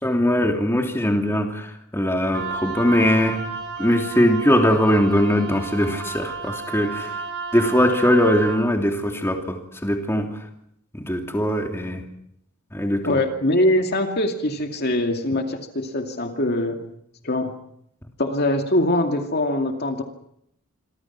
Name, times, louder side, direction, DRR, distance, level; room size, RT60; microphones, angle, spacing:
voice 1, 0.0-3.4 3.8-7.1 7.5-10.3 10.9-12.0 12.7-13.2, equal, 10° left, 3 dB, 3.1 m, -21 dB
Wind instrument woodwind instrument, 2.3-8.6, right 4 dB, 60° right, 7.2 m, -32 dB
voice 2, 13.0-16.9 17.2-17.5 18.2-20.0, left 1 dB, 45° left, 4 dB, 2.4 m, -23 dB
27.0 x 24.5 x 6.1 m, 0.75 s
head